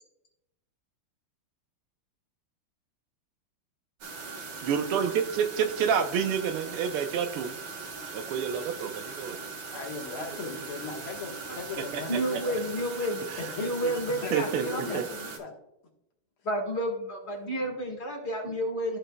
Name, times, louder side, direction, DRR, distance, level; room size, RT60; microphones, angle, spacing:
sound 1, 4.0-15.4, right 4 dB, 65° right, 1.9 m, -40 dB
voice 1, 4.6-7.6 8.1-9.4 11.9-12.2 13.3-13.4 14.3-15.0, right 7 dB, 90° right, 8 dB, 1.7 m, -29 dB
voice 2, 9.7-12.6 13.4-13.9 14.2-15.5 18.5-18.6, left 4 dB, 75° left, 0 dB, 2.3 m, -38 dB
voice 3, 12.1-13.2 13.6-15.0 16.4-19.0, equal, 30° left, 1 dB, 1.8 m, -31 dB
14.0 x 5.3 x 2.3 m, 0.84 s
omnidirectional pair, 2.4 m